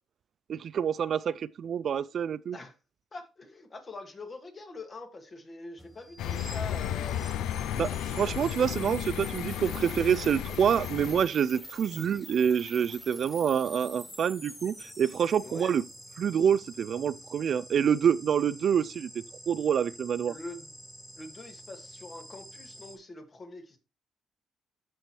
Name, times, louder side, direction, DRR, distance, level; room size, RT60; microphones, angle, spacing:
voice 1, 0.5-2.6 7.7-15.8 16.2-20.3, right 8 dB, 60° right, 0.3 m, -27 dB
voice 2, 3.1-7.2 15.4-15.7 20.3-20.7 21.2-23.8, left 2 dB, 35° left, 2.0 m, -44 dB
sound 1, 5.8-23.0, equal, 5° left, 2.2 m, -47 dB
sound 2, 6.2-11.3, left 10 dB, 85° left, 0.4 m, -34 dB
13.0 x 4.5 x 3.1 m
cardioid pair, 90°, 0 cm